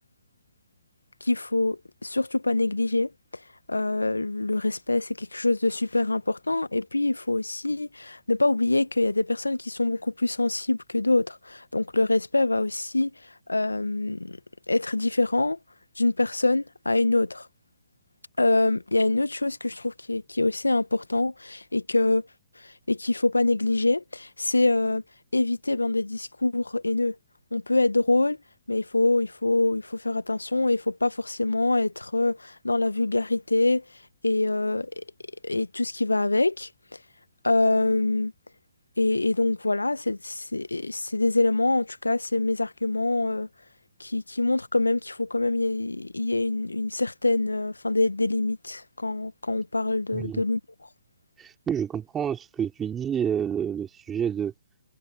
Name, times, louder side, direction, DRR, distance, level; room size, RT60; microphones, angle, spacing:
voice 1, 1.2-3.1 3.7-13.1 13.5-14.4 14.7-15.6 16.0-17.5 18.4-22.3 22.9-25.0 25.3-27.2 27.5-28.4 28.7-33.8 34.2-35.0 35.4-36.7 37.4-38.3 39.0-43.5 44.0-50.6, left 2 dB, 85° left, 1.2 m, -25 dB
voice 2, 50.1-50.4 51.4-54.5, right 8 dB, 15° right, 3.3 m, -29 dB
figure-of-eight pair, 130°, 0 cm